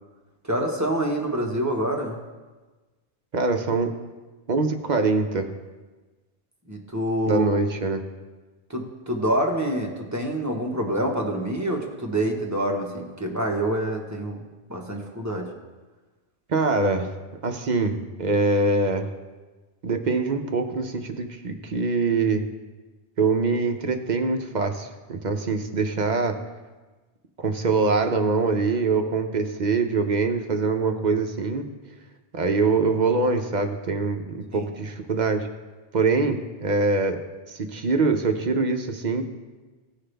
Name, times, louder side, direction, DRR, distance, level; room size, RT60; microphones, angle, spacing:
voice 1, 0.4-2.2 6.7-7.5 8.7-14.4 14.7-15.5 34.5-34.7, right 1 dB, 15° right, 0 dB, 1.2 m, -26 dB
voice 2, 3.3-3.9 4.5-5.5 7.2-8.0 16.5-17.1 17.4-19.1 19.8-22.4 23.2-26.4 27.4-31.7 32.3-35.5 35.9-37.2 37.5-39.2, right 3 dB, 50° right, 6 dB, 0.7 m, -24 dB
16.5 x 5.7 x 3.4 m, 1.3 s
omnidirectional pair, 1.1 m